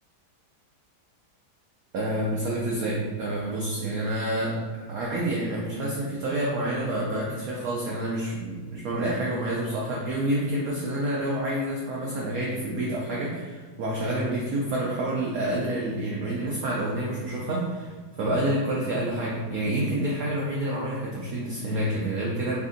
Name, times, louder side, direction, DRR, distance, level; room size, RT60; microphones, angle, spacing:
voice 1, 1.9-4.6 4.9-22.6, right 1 dB, 70° right, -4 dB, 0.8 m, -28 dB
3.4 x 2.6 x 3.7 m, 1.4 s
omnidirectional pair, 2.2 m